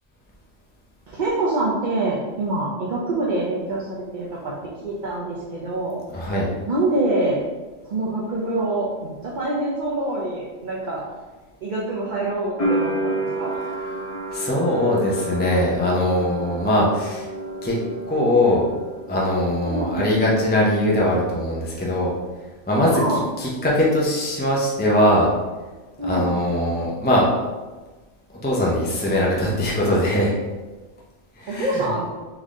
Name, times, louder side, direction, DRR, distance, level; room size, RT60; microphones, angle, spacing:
voice 1, 1.1-4.5 4.8-6.0 6.7-7.4 7.8-11.0 11.6-13.5 19.6-20.1 22.9-23.2 26.0-26.3 31.5-32.1, right 2 dB, 45° right, -5 dB, 0.7 m, -25 dB
voice 2, 6.1-6.5 14.3-17.3 17.6-17.8 18.1-18.7 19.1-22.1 22.7-23.0 23.4-25.3 26.1-27.3 28.4-30.3 31.4-31.8, left 1 dB, 10° left, -4 dB, 0.6 m, -21 dB
sound 1, 12.6-19.4 19.6-20.5, right 1 dB, 30° left, 1.0 m, -30 dB
4.1 x 3.5 x 3.6 m, 1.2 s
omnidirectional pair, 1.3 m